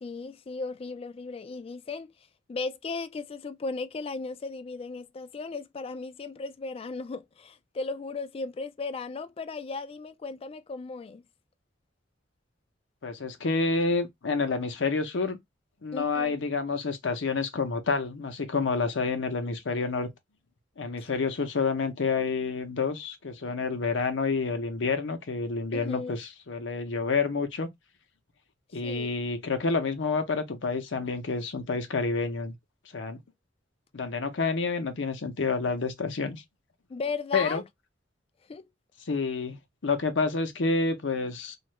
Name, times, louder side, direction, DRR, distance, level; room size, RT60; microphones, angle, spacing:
voice 1, 0.0-11.2 15.9-16.3 21.0-21.1 25.7-26.1 28.8-29.1 36.9-37.6 38.5-38.7, left 4 dB, 30° left, 0.3 m, -36 dB
voice 2, 13.0-15.4 15.8-20.1 20.8-27.7 28.7-32.5 32.9-33.2 33.9-36.4 37.3-37.6 39.1-41.6, left 4 dB, 70° left, 0.7 m, -29 dB
2.7 x 2.4 x 3.1 m
head